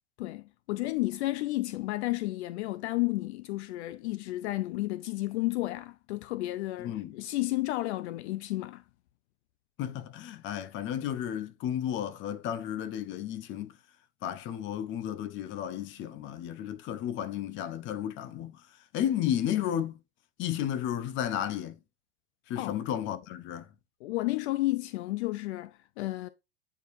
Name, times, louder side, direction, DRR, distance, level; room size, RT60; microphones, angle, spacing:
voice 1, 0.2-8.8 22.6-22.8 24.0-26.3, left 19 dB, 65° left, 0.6 m, -32 dB
voice 2, 6.8-7.1 9.8-13.7 14.2-18.6 18.9-20.0 20.4-21.8 22.5-23.7, left 10 dB, 35° left, 0.8 m, -33 dB
8.9 x 4.6 x 2.6 m
supercardioid pair, 135°, 36 cm